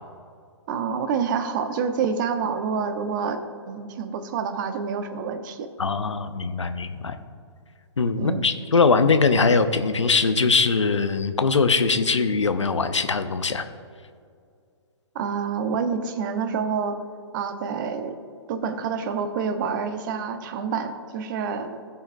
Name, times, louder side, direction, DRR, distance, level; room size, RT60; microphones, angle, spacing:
voice 1, 0.7-3.4 3.7-5.7 8.2-8.4 15.1-17.0 17.3-18.2 18.5-21.9, right 6 dB, 45° right, 9 dB, 0.9 m, -27 dB
voice 2, 5.8-7.2 8.0-13.6, left 4 dB, 85° left, 10 dB, 0.7 m, -21 dB
17.0 x 5.7 x 2.6 m, 2.3 s
hypercardioid pair, 125°, 15 cm